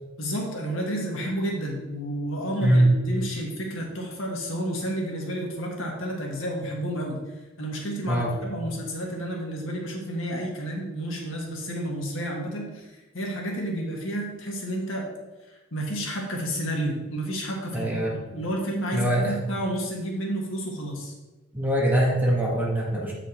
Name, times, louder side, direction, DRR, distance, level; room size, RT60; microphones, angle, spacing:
voice 1, 0.2-7.2 7.6-15.1 15.5-17.9 18.1-21.1, right 1 dB, 75° left, -1 dB, 1.7 m, -31 dB
voice 2, 17.7-18.1 18.9-19.3 21.5-23.1, right 1 dB, 10° right, -4 dB, 1.7 m, -22 dB
8.0 x 5.0 x 4.5 m, 1.1 s
head